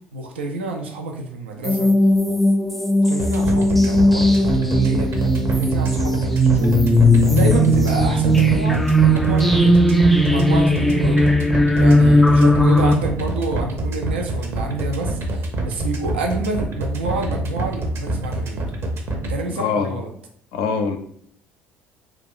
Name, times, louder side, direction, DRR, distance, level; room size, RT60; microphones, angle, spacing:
voice 1, 0.1-1.9 3.0-5.1 5.4-6.8 7.2-8.8 9.1-9.8 10.2-11.3 11.7-18.7 19.3-20.1, right 2 dB, 80° right, 2 dB, 0.4 m, -28 dB
sound 1, 1.6-12.9, equal, ahead, 0.3 m, -17 dB
sound 2, 3.2-19.3, right 2 dB, 45° right, 0.7 m, -26 dB
voice 2, 19.5-20.0 20.5-21.0, left 5 dB, 65° left, 6 dB, 0.4 m, -23 dB
2.4 x 2.2 x 3.5 m, 0.62 s
figure-of-eight pair, 55°, 6 cm